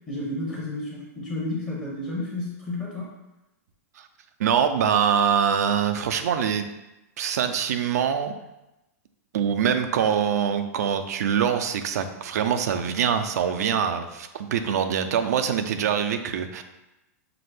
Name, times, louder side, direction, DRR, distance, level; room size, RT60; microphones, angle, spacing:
voice 1, 0.1-3.1, left 2 dB, 10° left, -5 dB, 0.8 m, -31 dB
voice 2, 4.4-6.6 7.2-8.3 9.3-16.6, right 8 dB, 75° right, 8 dB, 0.4 m, -24 dB
5.7 x 2.0 x 3.3 m, 0.95 s
hypercardioid pair, 145°, 9 cm